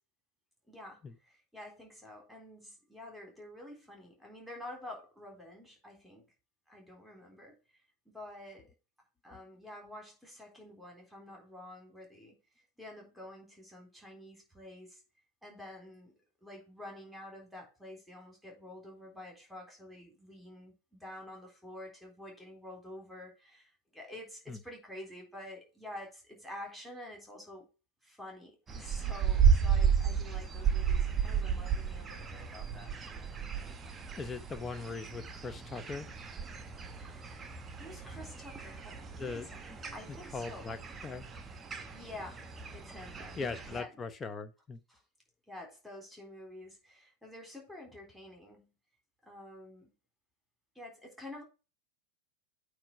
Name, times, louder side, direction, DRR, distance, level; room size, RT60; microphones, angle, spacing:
voice 1, 0.7-6.3 6.7-7.6 8.1-8.7 9.2-12.4 12.8-15.0 15.4-16.1 16.4-27.7 28.0-32.9 37.0-39.6 39.9-40.8 41.9-42.4 42.7-43.9 44.9-45.0 45.5-48.7 49.2-49.9 50.8-51.4, left 1 dB, ahead, 3.7 m, -49 dB
sound 1, 28.7-43.8, right 7 dB, 20° right, 1.0 m, -33 dB
voice 2, 34.2-36.1 39.2-39.8 40.1-40.8 41.0-41.2 43.4-44.8, left 4 dB, 20° left, 0.8 m, -40 dB
8.8 x 3.4 x 5.8 m
figure-of-eight pair, 90°, 0 cm